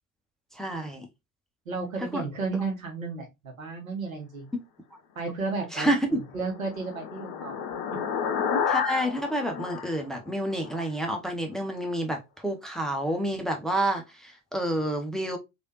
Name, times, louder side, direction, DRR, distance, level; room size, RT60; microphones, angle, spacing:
voice 1, 0.5-1.1 2.0-2.2 4.5-4.6 5.7-6.1 8.7-15.4, right 1 dB, ahead, 0.7 m, -29 dB
voice 2, 1.7-4.5 5.1-5.9 6.3-7.6, right 4 dB, 80° right, 1.1 m, -33 dB
sound 1, 6.0-10.8, left 6 dB, 50° left, 0.7 m, -31 dB
3.3 x 2.7 x 2.8 m
figure-of-eight pair, 60°, 40 cm